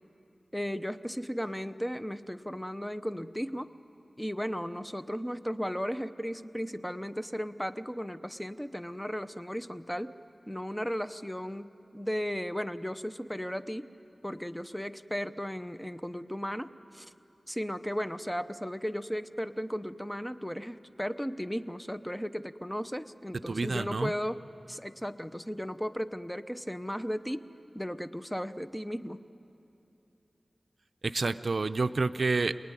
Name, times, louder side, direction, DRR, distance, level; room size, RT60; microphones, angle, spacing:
voice 1, 0.5-3.7 4.2-10.2 10.5-13.9 14.2-17.1 17.5-27.5 27.7-29.2, equal, 5° left, 11 dB, 0.7 m, -35 dB
voice 2, 23.5-24.1 31.0-32.6, right 3 dB, 65° right, 12 dB, 0.6 m, -29 dB
27.5 x 19.5 x 9.8 m, 2.8 s
wide cardioid pair, 60°, 0 cm